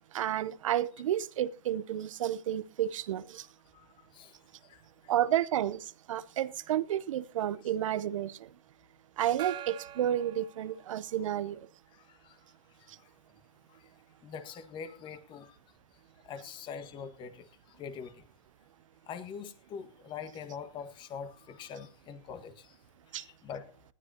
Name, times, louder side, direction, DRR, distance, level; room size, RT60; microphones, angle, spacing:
voice 1, 0.1-3.5 5.1-8.5 9.2-11.6 23.1-23.2, right 11 dB, 75° right, 0.8 m, -31 dB
voice 2, 3.7-4.4 4.6-5.1 11.2-11.3 11.9-12.4 12.7-13.1 13.7-13.9 14.2-15.6 16.2-18.2 19.1-22.8 23.1-23.7, left 6 dB, 30° left, 1.7 m, -44 dB
Gong, 9.4-11.4, right 12 dB, 25° right, 1.1 m, -45 dB
19.5 x 13.5 x 2.9 m
hypercardioid pair, 140°, 17 cm